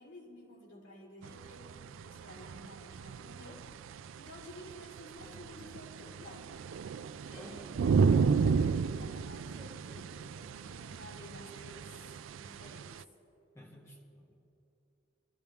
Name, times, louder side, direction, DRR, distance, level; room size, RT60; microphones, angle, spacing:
voice 1, 0.0-3.7 4.2-6.5 7.2-7.8 8.3-13.0, left 1 dB, 80° left, -4 dB, 3.7 m, -52 dB
sound 1, 1.2-13.0, right 5 dB, 90° right, 0.4 m, -33 dB
voice 2, 7.3-7.7 8.0-8.6 13.5-14.4, equal, 15° left, -1 dB, 1.8 m, -52 dB
23.5 x 14.0 x 3.5 m, 2.9 s
head